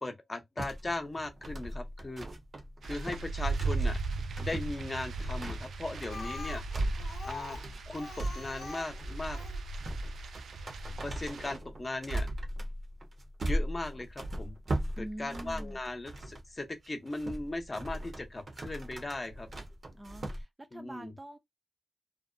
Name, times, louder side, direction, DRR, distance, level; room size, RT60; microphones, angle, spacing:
voice 1, 0.0-2.3 2.8-4.0 4.4-6.9 7.2-7.6 7.9-9.4 11.0-12.3 13.4-14.6 15.0-19.5 20.7-21.1, left 2 dB, 30° left, 0.7 m, -38 dB
sound 1, 0.6-16.5 16.8-20.4, right 1 dB, 55° right, 0.7 m, -38 dB
FP Rainstorm, 2.8-11.6, right 3 dB, 80° right, 0.3 m, -37 dB
Speech, 6.1-9.6 10.6-10.7 11.1-11.2 11.4-11.5, left 4 dB, 70° left, 0.5 m, -44 dB
voice 2, 15.0-15.8 19.9-21.4, right 1 dB, 15° right, 0.5 m, -44 dB
2.6 x 2.0 x 2.5 m
cardioid pair, 60°, 0 cm